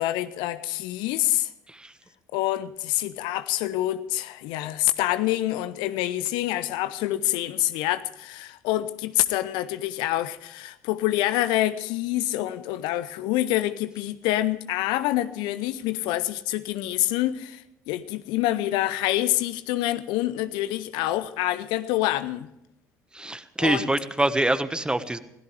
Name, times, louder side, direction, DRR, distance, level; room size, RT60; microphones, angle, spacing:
voice 1, 0.0-1.5 2.3-22.5 23.6-23.9, left 15 dB, 60° left, 0.7 m, -26 dB
voice 2, 23.1-25.2, right 2 dB, 10° right, 1.3 m, -25 dB
25.0 x 17.0 x 3.4 m
figure-of-eight pair, 55°, 9 cm